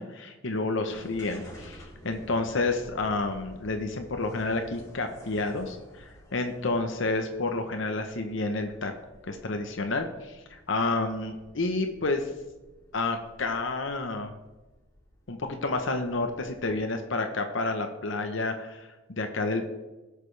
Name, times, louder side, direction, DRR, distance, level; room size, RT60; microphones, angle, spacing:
voice 1, 0.0-8.9 9.3-12.3 12.9-14.3 15.3-19.7, left 3 dB, 70° left, 5 dB, 0.9 m, -30 dB
sound 1, 0.9-17.0, equal, 20° left, 3.6 m, -52 dB
17.0 x 6.7 x 3.3 m, 1.1 s
head